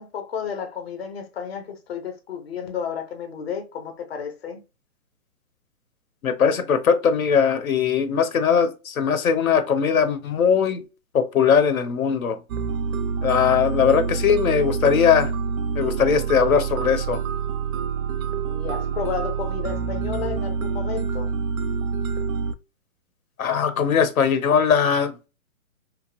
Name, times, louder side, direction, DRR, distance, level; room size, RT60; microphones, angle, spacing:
voice 1, 0.0-4.6 18.5-21.3, left 7 dB, 50° left, 0.6 m, -32 dB
voice 2, 6.2-10.8 11.1-12.4 13.2-15.3 15.8-17.2 23.4-25.3, left 7 dB, 85° left, 0.8 m, -20 dB
sound 1, 12.5-22.5, right 6 dB, 85° right, 0.5 m, -27 dB
2.9 x 2.0 x 2.9 m
hypercardioid pair, 180°, 41 cm